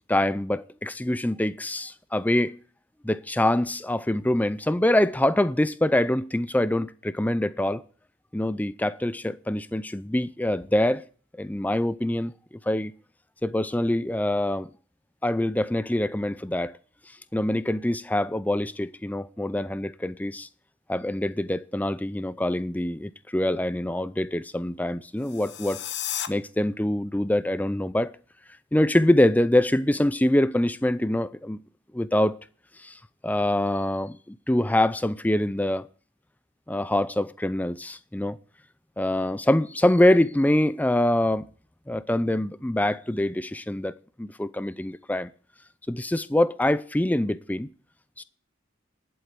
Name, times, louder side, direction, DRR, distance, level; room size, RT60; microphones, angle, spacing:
voice 1, 0.1-2.5 3.0-7.8 8.3-11.0 11.4-12.3 12.7-12.9 13.4-14.7 15.2-16.7 17.3-20.5 20.9-25.8 26.3-28.1 28.7-31.6 31.9-32.4 32.8-35.9 36.7-38.4 39.0-41.5 41.9-45.3 45.9-47.7 48.2-48.3, left 1 dB, 10° left, 0.5 m, -24 dB
sound 1, 25.2-26.3, left 11 dB, 55° left, 0.9 m, -33 dB
11.5 x 7.8 x 6.9 m
head